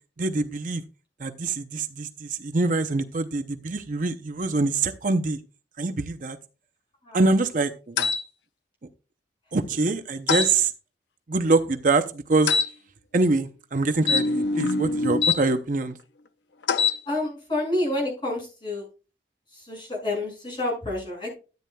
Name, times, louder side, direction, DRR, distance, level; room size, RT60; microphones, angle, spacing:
voice 1, 0.2-0.8 1.2-5.4 5.8-6.4 7.1-8.1 9.5-10.7 11.3-12.5 13.1-16.0, right 3 dB, 45° right, 8 dB, 0.6 m, -24 dB
sound 1, 8.0-8.2 10.3-10.5 12.5-12.7 14.0-15.4 16.6-17.0, left 4 dB, 80° left, 0.6 m, -23 dB
voice 2, 17.1-18.9 19.5-21.3, left 2 dB, 25° left, -2 dB, 5.8 m, -29 dB
13.5 x 9.1 x 2.2 m, 0.34 s
head